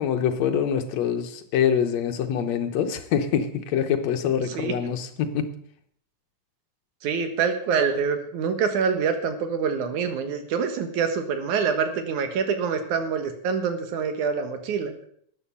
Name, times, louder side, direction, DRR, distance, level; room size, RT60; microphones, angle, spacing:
voice 1, 0.0-5.5, left 8 dB, 70° left, 7 dB, 2.3 m, -25 dB
voice 2, 7.0-14.9, right 6 dB, 80° right, 7 dB, 2.9 m, -26 dB
13.0 x 9.9 x 5.5 m, 0.63 s
omnidirectional pair, 3.4 m